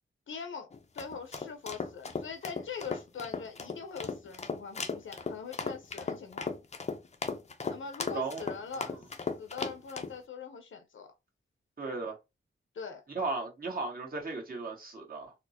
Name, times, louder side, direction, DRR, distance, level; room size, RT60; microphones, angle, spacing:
voice 1, 0.3-6.5 7.7-9.0 9.4-11.1 12.7-13.0, left 5 dB, 80° left, 0.8 m, -42 dB
sound 1, 0.7-10.1, left 4 dB, 35° left, 0.5 m, -37 dB
voice 2, 8.1-8.5 8.9-9.0 11.8-12.2 13.1-15.3, right 3 dB, 45° right, 1.3 m, -36 dB
4.2 x 2.0 x 2.8 m
wide cardioid pair, 125°, 20 cm